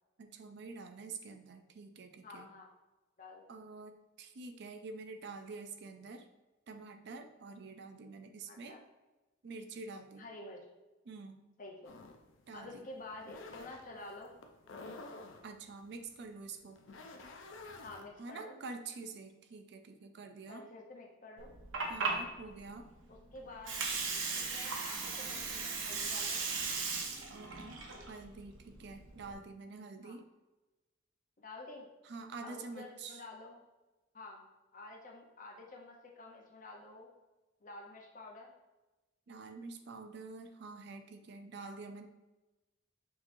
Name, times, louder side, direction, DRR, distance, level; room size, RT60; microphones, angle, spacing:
voice 1, 0.2-2.5 3.5-6.3 6.7-8.8 9.4-10.3 11.1-11.5 12.5-12.9 15.4-16.8 18.2-20.6 21.9-22.9 27.3-27.8 28.1-30.2 32.0-33.2 39.3-42.1, right 4 dB, 60° right, 7 dB, 0.4 m, -47 dB
voice 2, 2.2-2.7 3.2-3.5 8.5-8.8 10.2-10.6 11.6-12.0 12.5-14.3 17.8-18.6 20.5-21.6 23.1-23.8 24.4-26.5 30.0-30.2 31.4-31.9 32.4-33.6 34.1-34.5 34.7-37.1 37.6-38.5 41.6-41.8, left 2 dB, 45° left, 0 dB, 0.7 m, -49 dB
sound 1, 11.8-18.1, left 3 dB, 80° left, 0.5 m, -51 dB
Water, 21.4-29.3, right 4 dB, 90° right, 0.8 m, -37 dB
6.2 x 3.0 x 2.6 m, 1.1 s
head